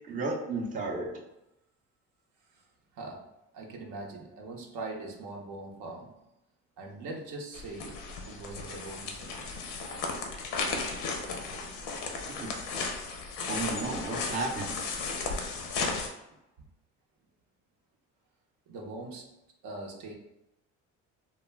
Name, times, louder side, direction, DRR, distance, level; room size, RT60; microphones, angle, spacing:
voice 1, 0.1-1.1 12.3-12.6 13.5-14.8, right 3 dB, 25° right, 0 dB, 0.5 m, -33 dB
voice 2, 2.9-3.3 3.5-6.1 6.8-8.0 8.3-9.6 15.5-15.9 16.3-16.4 18.7-19.3 19.6-20.1, right 2 dB, 70° right, 1 dB, 0.7 m, -42 dB
sound 1, 7.5-16.1, left 4 dB, 90° left, 0.6 m, -35 dB
2.2 x 2.1 x 3.2 m, 0.89 s
cardioid pair, 95°, 31 cm